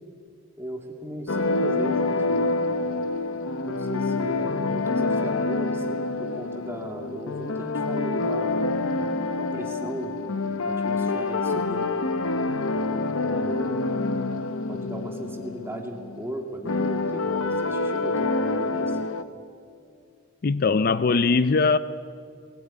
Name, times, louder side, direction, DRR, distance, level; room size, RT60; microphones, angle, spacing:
voice 1, 0.6-2.7 3.6-8.8 9.4-10.2 10.6-12.0 12.7-13.9 14.7-19.0, equal, 10° right, 2 dB, 2.5 m, -37 dB
sound 1, 1.3-19.2, left 3 dB, 85° left, 1.0 m, -27 dB
voice 2, 20.4-21.8, left 4 dB, 45° left, 14 dB, 0.5 m, -20 dB
20.0 x 17.0 x 10.0 m, 2.3 s
head